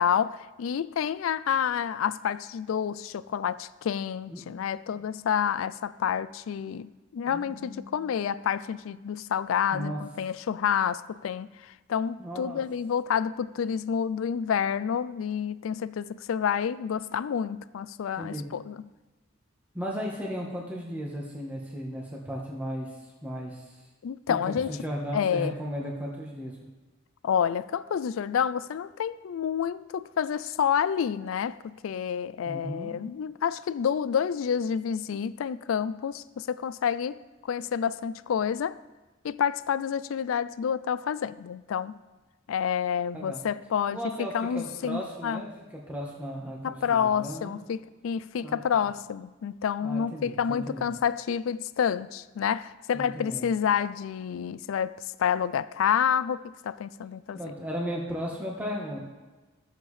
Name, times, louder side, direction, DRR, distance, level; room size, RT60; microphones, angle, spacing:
voice 1, 0.0-18.8 24.0-24.8 25.1-25.5 27.2-38.8 39.2-42.0 42.5-45.4 46.6-57.4, left 8 dB, 75° left, 0.3 m, -29 dB
voice 2, 4.3-4.6 7.3-7.9 9.7-10.0 12.2-12.6 18.1-18.4 19.7-22.9 23.2-23.7 24.3-26.6 32.4-32.9 43.1-43.4 43.9-47.5 48.4-48.6 49.8-50.9 52.9-53.5 57.3-59.0, equal, 10° right, 1.2 m, -35 dB
14.0 x 7.3 x 3.2 m
head